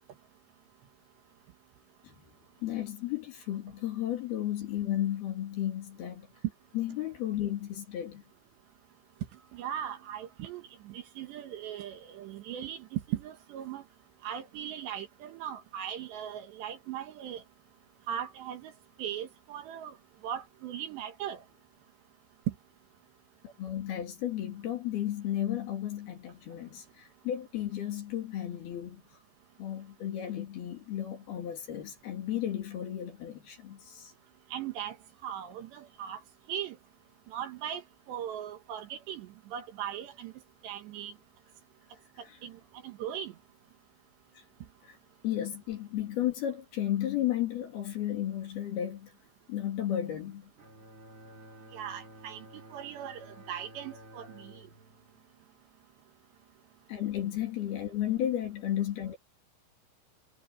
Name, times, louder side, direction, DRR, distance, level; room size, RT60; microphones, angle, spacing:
voice 1, 2.6-6.3 6.8-8.2 23.4-29.0 29.6-34.1 44.4-44.5 44.8-45.0 45.2-49.1 49.5-50.5 56.9-59.2, left 12 dB, 55° left, 3.7 m, -33 dB
voice 2, 9.5-13.8 14.2-17.4 18.1-18.7 19.0-19.9 20.2-21.4 34.5-35.0 35.2-36.2 36.5-36.8 37.3-37.8 38.1-40.3 40.6-41.1 42.4-42.6 42.8-43.3 51.7-52.4 52.7-54.5, right 10 dB, 70° right, 3.1 m, -38 dB
Bowed string instrument, 50.6-56.0, right 1 dB, 25° right, 5.5 m, -53 dB
omnidirectional pair, 6.0 m